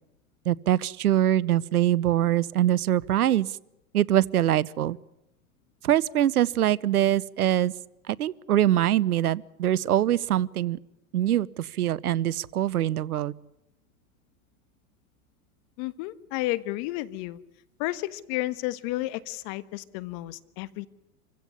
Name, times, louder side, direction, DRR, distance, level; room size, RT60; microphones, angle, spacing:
voice 1, 0.5-3.5 3.9-5.0 5.8-7.7 8.1-10.8 11.1-13.3, right 12 dB, 90° right, 23 dB, 0.8 m, -23 dB
voice 2, 15.8-17.4 17.8-20.9, left 17 dB, 50° left, 15 dB, 1.4 m, -32 dB
26.5 x 16.0 x 9.7 m, 0.88 s
hypercardioid pair, 105°, 43 cm